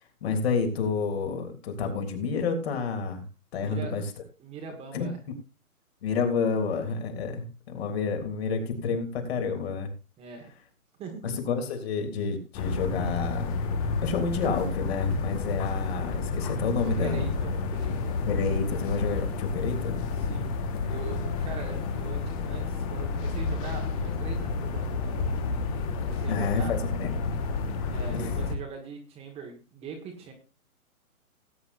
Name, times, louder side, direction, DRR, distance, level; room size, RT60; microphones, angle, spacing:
voice 1, 0.2-3.2 3.5-4.0 4.9-5.1 6.0-9.9 11.2-13.5 14.0-17.3 18.3-20.1 26.3-27.4 28.1-28.3, left 5 dB, 45° left, 4 dB, 3.5 m, -29 dB
voice 2, 3.6-3.9 4.4-5.2 10.2-10.5 11.0-11.3 16.8-18.2 20.1-20.5 20.8-26.7 27.9-30.3, right 5 dB, 15° right, 2 dB, 1.8 m, -41 dB
sound 1, 12.5-28.6, left 4 dB, 25° left, 1.6 m, -30 dB
19.5 x 9.4 x 2.7 m, 0.31 s
hypercardioid pair, 150°, 44 cm